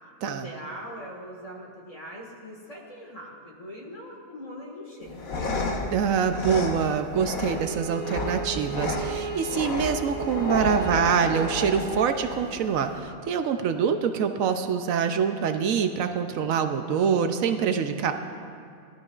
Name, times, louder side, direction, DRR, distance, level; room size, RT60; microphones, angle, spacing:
voice 1, 0.2-5.4, equal, 25° left, -2 dB, 1.8 m, -41 dB
sound 1, 5.0-13.0, left 3 dB, 80° left, 1.5 m, -32 dB
voice 2, 5.9-18.1, right 7 dB, 75° right, 7 dB, 1.0 m, -25 dB
Bowed string instrument, 7.4-12.3, right 5 dB, 35° right, 0.3 m, -37 dB
18.0 x 12.5 x 2.4 m, 2.4 s
omnidirectional pair, 1.4 m